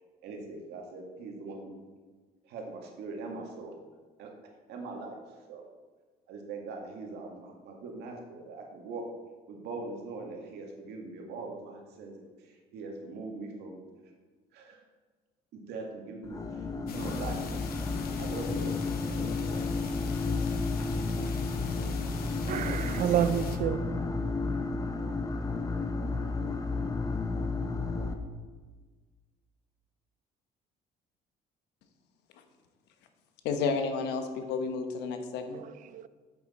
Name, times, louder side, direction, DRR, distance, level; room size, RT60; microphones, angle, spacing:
voice 1, 0.2-1.8 2.4-3.7 4.2-4.3 4.7-5.2 5.5-5.6 6.3-9.0 9.5-13.8 14.5-14.8 15.5-17.6 18.0-18.8 19.1-19.9, right 3 dB, 80° right, 1.8 m, -41 dB
sound 1, 16.2-28.1, left 3 dB, 20° left, 0.8 m, -32 dB
sound 2, 16.9-23.6, left 5 dB, 65° left, 1.1 m, -40 dB
voice 2, 22.5-24.0 35.5-36.1, right 10 dB, 50° right, 0.4 m, -30 dB
voice 3, 33.4-35.6, left 5 dB, 85° left, 1.1 m, -31 dB
7.8 x 7.8 x 4.2 m
cardioid pair, 110°, 17 cm